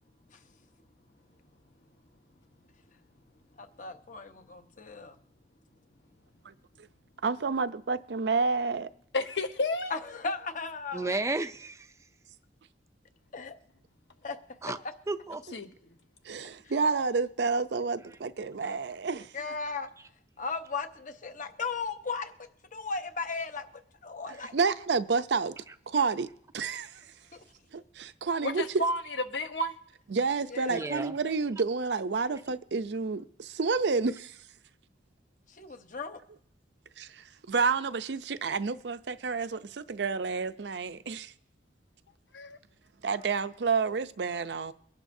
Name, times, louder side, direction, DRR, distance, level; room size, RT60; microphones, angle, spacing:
voice 1, 3.6-5.1 9.9-11.2 13.3-13.5 14.2-14.4 19.3-19.9 20.4-22.3 22.7-23.7 24.0-24.5 30.5-30.9 35.6-36.2, left 4 dB, 45° left, 1.0 m, -36 dB
voice 2, 7.2-8.9 16.3-19.3 24.5-25.6 25.9-26.3 26.5-27.0 27.7-28.6 30.1-34.4 37.0-41.3 43.0-44.7, right 4 dB, 70° right, 0.5 m, -29 dB
voice 3, 9.1-9.9 15.5-15.7 28.4-29.0 29.3-29.7 42.3-42.6, left 1 dB, 75° left, 1.0 m, -30 dB
voice 4, 10.9-11.9 14.6-14.8 15.1-15.4 24.4-24.5 25.7-25.8 30.7-31.2, right 2 dB, 15° right, 0.4 m, -33 dB
23.5 x 11.0 x 2.7 m
head